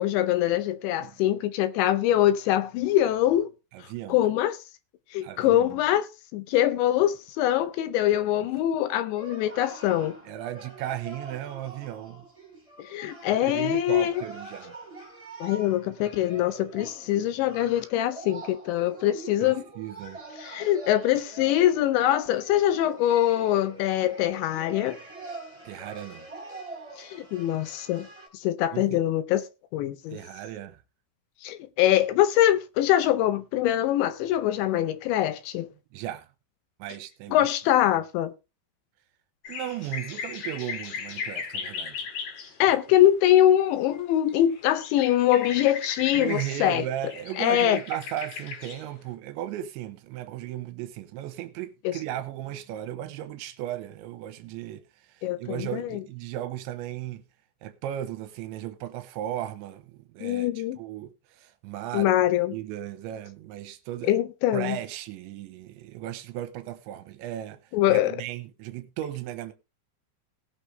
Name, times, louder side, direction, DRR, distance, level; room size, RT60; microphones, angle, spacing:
voice 1, 0.0-3.5 4.1-4.6 5.1-10.2 12.8-14.1 15.4-19.6 20.4-25.0 27.0-28.1 28.3-29.4 29.7-30.2 31.4-35.7 37.3-38.3 42.6-46.8 47.4-47.8 51.8-52.0 55.2-56.0 60.2-60.8 61.9-62.5 64.0-64.8 67.7-68.2, left 12 dB, 80° left, 2.8 m, -23 dB
voice 2, 3.7-4.3 5.2-5.8 10.3-12.3 13.3-14.8 19.4-20.2 25.6-26.3 28.7-29.0 30.1-30.8 35.9-36.3 36.8-37.5 39.5-42.1 42.7-42.8 46.1-57.2 57.6-62.1 62.5-64.2 64.5-69.5, right 12 dB, 80° right, 2.9 m, -36 dB
sound 1, 9.1-28.3, right 3 dB, 10° right, 3.2 m, -44 dB
sound 2, 39.4-42.5 43.0-43.1 43.9-44.0 44.3-48.8, left 6 dB, 55° left, 4.0 m, -37 dB
18.5 x 6.6 x 3.2 m
omnidirectional pair, 5.6 m